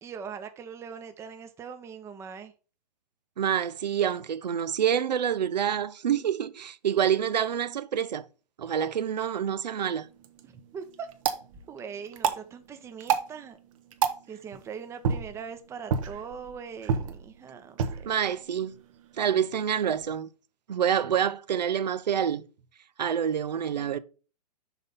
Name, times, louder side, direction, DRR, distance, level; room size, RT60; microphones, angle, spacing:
voice 1, 0.0-2.5 10.4-11.1 11.7-13.6 14.3-18.2, right 6 dB, 15° right, 0.6 m, -41 dB
voice 2, 3.4-8.3 8.6-10.1 18.1-18.8 19.2-20.3 20.7-22.5 23.0-24.0, right 8 dB, 90° right, 0.6 m, -27 dB
sound 1, 10.0-20.1, right 7 dB, 50° right, 1.0 m, -33 dB
5.8 x 4.1 x 5.3 m
hypercardioid pair, 140°, 21 cm